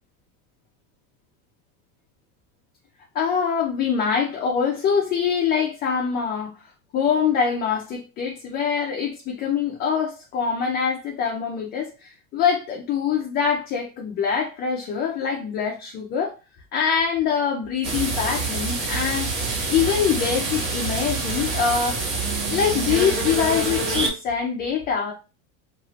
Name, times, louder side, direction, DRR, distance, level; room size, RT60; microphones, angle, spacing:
voice 1, 3.1-6.5 6.9-16.3 16.7-19.3 19.7-22.0 22.5-25.1, left 7 dB, 25° left, 0.4 m, -24 dB
sound 1, 17.8-24.1, right 3 dB, 45° right, 1.3 m, -26 dB
2.6 x 2.5 x 3.0 m
supercardioid pair, 130°, 42 cm